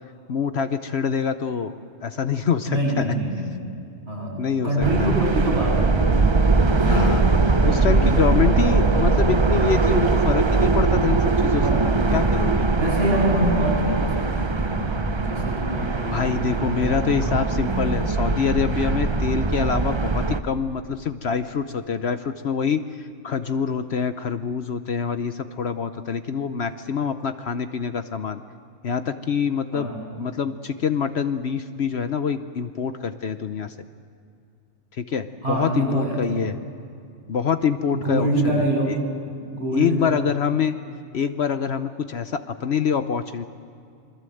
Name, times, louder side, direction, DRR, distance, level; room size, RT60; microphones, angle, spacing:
voice 1, 0.3-1.7 2.0-3.1 4.4-4.9 6.9-7.2 7.6-11.6 12.1-12.7 16.1-22.8 23.2-28.4 28.8-29.9 30.2-33.7 35.0-36.5 37.3-38.3 39.7-40.7 41.1-43.5, left 6 dB, 60° left, 10 dB, 1.0 m, -25 dB
voice 2, 2.7-3.6 4.1-6.3 6.8-8.9 11.6-12.4 12.8-17.4 18.0-18.2 29.7-29.9 35.4-36.4 37.9-39.0 39.4-40.1, right 1 dB, 55° right, -3 dB, 8.2 m, -26 dB
sound 1, 4.8-20.4, right 3 dB, 25° right, 0.7 m, -21 dB
27.5 x 22.5 x 7.8 m, 2.4 s
omnidirectional pair, 1.3 m